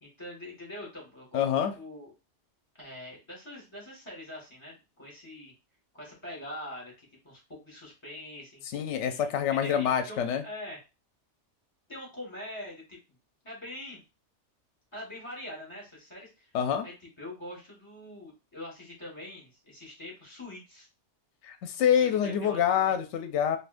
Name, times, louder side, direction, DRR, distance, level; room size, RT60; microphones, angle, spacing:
voice 1, 0.0-1.5 1.7-2.1 2.8-5.5 5.9-8.6 9.0-10.8 11.9-13.0 13.4-14.0 14.9-16.5 16.8-20.9 22.0-23.0, left 1 dB, 25° left, -2 dB, 1.6 m, -44 dB
voice 2, 1.3-1.7 8.7-10.4 16.5-16.9 21.5-23.6, left 9 dB, 75° left, 8 dB, 0.8 m, -26 dB
3.4 x 2.7 x 2.5 m, 0.29 s
omnidirectional pair, 1.2 m